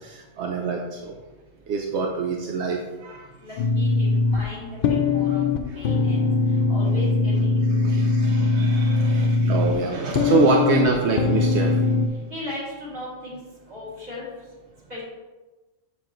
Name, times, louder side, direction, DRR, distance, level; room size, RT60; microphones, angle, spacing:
voice 1, 0.0-1.1 1.7-3.2 7.8-11.9, right 4 dB, 80° right, 1 dB, 1.0 m, -25 dB
voice 2, 3.4-4.8 5.1-6.3 6.7-7.6 7.9-8.0 12.3-13.4 13.7-14.3 14.9-15.0, left 1 dB, 35° right, -7 dB, 2.7 m, -37 dB
sound 1, 3.6-12.1, left 3 dB, 60° left, 0.7 m, -21 dB
7.1 x 7.0 x 3.0 m, 1.2 s
omnidirectional pair, 1.1 m